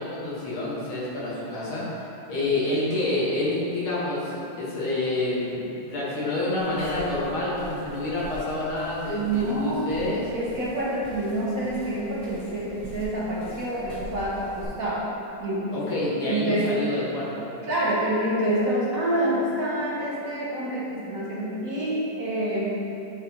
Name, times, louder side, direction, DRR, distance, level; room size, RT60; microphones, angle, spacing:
voice 1, 0.0-2.0 2.3-10.2 15.7-17.5, left 2 dB, 85° left, -7 dB, 2.3 m, -28 dB
sound 1, 6.6-14.7, left 1 dB, 15° left, 1.2 m, -44 dB
voice 2, 9.1-9.9 10.3-15.1 15.4-15.8 16.0-16.7 17.6-22.8, right 1 dB, 60° right, -6 dB, 1.0 m, -27 dB
9.3 x 3.9 x 2.8 m, 2.9 s
omnidirectional pair, 2.2 m